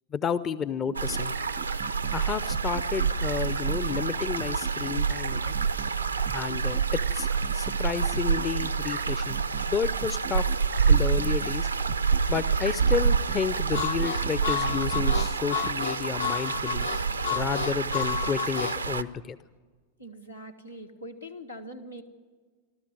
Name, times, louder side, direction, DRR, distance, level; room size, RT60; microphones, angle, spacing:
voice 1, 0.1-1.3 2.1-5.5 6.3-9.4 9.7-10.4 10.9-11.7 12.3-16.9 17.3-19.4, left 7 dB, 25° left, 16 dB, 0.6 m, -31 dB
sound 1, 0.9-15.7, right 16 dB, 35° right, 0.5 m, -41 dB
sound 2, 0.9-19.0, right 5 dB, 80° right, 0.6 m, -27 dB
Harmonica, 13.7-18.8, left 6 dB, 70° left, 1.0 m, -31 dB
voice 2, 20.0-22.0, equal, 85° left, 2 dB, 1.7 m, -42 dB
27.0 x 13.0 x 7.9 m, 1.5 s
figure-of-eight pair, 90°, 0 cm